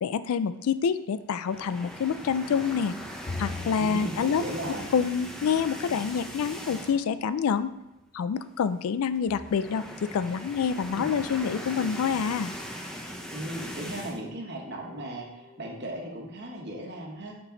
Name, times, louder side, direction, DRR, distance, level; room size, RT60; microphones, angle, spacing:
voice 1, 0.0-2.9 3.4-4.4 4.9-7.7 8.1-12.5, left 6 dB, 75° left, 13 dB, 0.3 m, -27 dB
sound 1, 1.4-7.2 7.6-7.7 8.0-8.1 9.2-14.2, equal, 5° left, 0.5 m, -40 dB
Bowed string instrument, 3.3-6.7, left 3 dB, 45° left, 0.8 m, -42 dB
voice 2, 3.8-4.9 10.9-11.1 13.3-17.4, right 1 dB, 50° right, 0 dB, 1.3 m, -37 dB
sound 2, 10.3-15.7, left 3 dB, 20° left, 1.4 m, -55 dB
6.0 x 5.9 x 3.8 m, 0.91 s
head